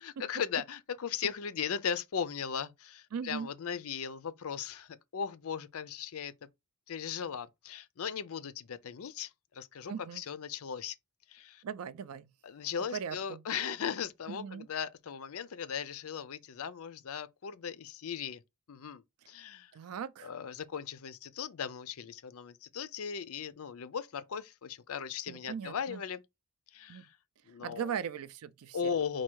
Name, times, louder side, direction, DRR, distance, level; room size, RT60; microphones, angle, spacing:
voice 1, 0.0-6.3 6.9-10.9 11.3-11.6 12.4-18.4 18.7-19.7 20.2-26.2 26.7-27.2 27.5-27.9 28.7-29.2, left 7 dB, 75° left, 0.5 m, -38 dB
voice 2, 3.1-3.5 9.9-10.2 11.6-12.3 12.9-13.4 14.3-14.7 19.7-20.3 25.3-26.0 26.9-27.1 27.6-28.8, right 7 dB, 80° right, 0.4 m, -39 dB
4.5 x 2.2 x 4.5 m
head